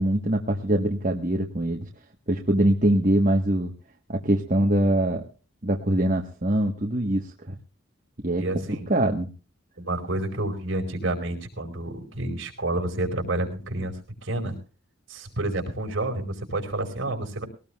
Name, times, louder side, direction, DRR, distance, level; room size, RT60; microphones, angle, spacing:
voice 1, 0.0-1.9 2.3-3.7 4.1-5.2 5.6-7.6 8.2-9.3, right 1 dB, 35° right, 2 dB, 1.3 m, -23 dB
voice 2, 8.4-8.9 9.8-14.6 15.1-17.4, right 2 dB, 60° right, 2 dB, 4.7 m, -29 dB
21.5 x 18.5 x 2.3 m, 0.35 s
head